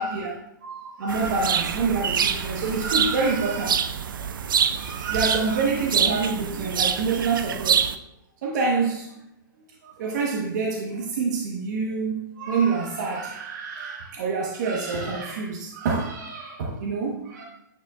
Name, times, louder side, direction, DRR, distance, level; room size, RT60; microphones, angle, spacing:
voice 1, 0.0-3.7 4.3-4.4 4.7-7.9 8.4-9.1 9.8-17.4, right 4 dB, 60° right, -2 dB, 1.2 m, -27 dB
sound 1, 1.1-8.0, right 7 dB, 80° right, 0.5 m, -26 dB
9.4 x 4.6 x 2.4 m, 0.81 s
hypercardioid pair, 135°, 11 cm